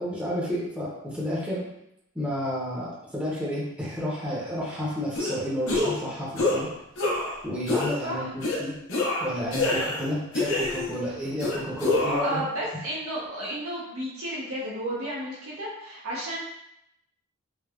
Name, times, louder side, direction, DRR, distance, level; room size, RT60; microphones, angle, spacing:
voice 1, 0.0-1.7 2.1-6.7 7.4-8.8 9.2-12.4, equal, 5° right, -7 dB, 0.6 m, -31 dB
sound 1, 5.1-5.3 5.7-6.0 6.4-6.6 7.0-7.3 7.7-8.0 8.4-8.6 8.9-10.0 10.3-11.0 11.4-12.4, left 2 dB, 75° left, 0.7 m, -26 dB
voice 2, 12.2-16.4, right 1 dB, 85° right, -5 dB, 0.6 m, -32 dB
3.2 x 2.1 x 2.3 m, 0.82 s
head